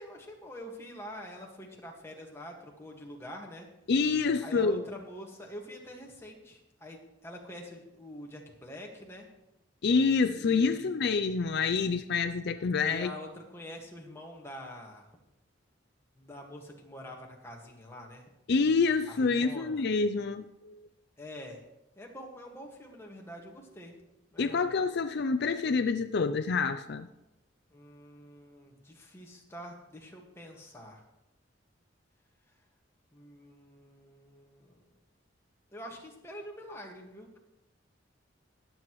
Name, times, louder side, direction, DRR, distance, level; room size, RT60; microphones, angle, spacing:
voice 1, 0.0-3.7 4.4-9.3 10.3-10.9 12.9-15.1 16.2-18.3 19.1-19.9 21.2-21.6 22.0-23.9 24.3-24.8 27.7-31.0 33.1-34.9 35.7-37.3, equal, 15° left, 0 dB, 1.7 m, -46 dB
voice 2, 3.9-4.8 9.8-13.1 18.5-20.8 24.4-27.1, left 4 dB, 60° left, 8 dB, 0.5 m, -27 dB
21.5 x 7.8 x 3.1 m, 0.92 s
head